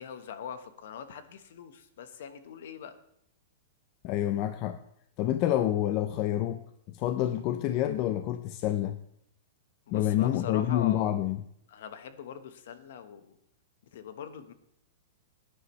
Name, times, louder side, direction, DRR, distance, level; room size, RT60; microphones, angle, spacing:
voice 1, 0.0-3.0 9.9-11.2 11.7-13.4 13.9-14.5, left 7 dB, 55° left, 11 dB, 1.1 m, -42 dB
voice 2, 4.0-4.8 5.2-9.0 9.9-11.4, left 12 dB, 25° left, 10 dB, 0.4 m, -28 dB
18.5 x 10.0 x 3.1 m, 0.73 s
supercardioid pair, 180°, 0 cm